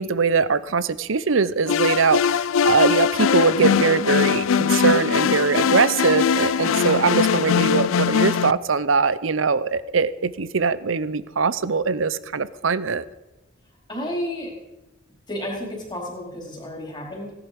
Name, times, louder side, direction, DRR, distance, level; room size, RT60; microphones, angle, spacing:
voice 1, 0.0-13.0, right 5 dB, 75° right, 16 dB, 0.7 m, -22 dB
sound 1, 1.7-8.5, left 7 dB, 80° left, 0.4 m, -21 dB
voice 2, 13.9-14.5 15.3-17.3, equal, 25° left, -2 dB, 4.3 m, -31 dB
17.0 x 11.0 x 5.2 m, 1.0 s
head